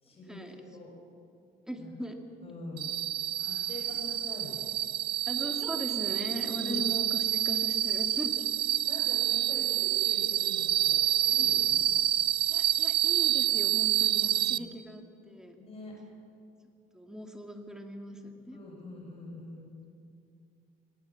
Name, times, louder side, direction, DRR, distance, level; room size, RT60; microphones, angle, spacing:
voice 1, 0.0-0.9 1.8-1.9 2.4-2.9 3.4-4.7 6.6-6.8 8.8-11.9 14.1-14.6 15.7-15.9 18.5-19.8, left 2 dB, 35° left, -1 dB, 6.9 m, -44 dB
voice 2, 1.7-2.2 5.3-8.5 12.5-15.6 16.9-18.6, equal, 5° right, 4 dB, 2.3 m, -39 dB
sound 1, 2.8-14.6, right 13 dB, 65° right, 0.6 m, -28 dB
20.5 x 18.0 x 7.2 m, 2.5 s
cardioid pair, 110°, 17 cm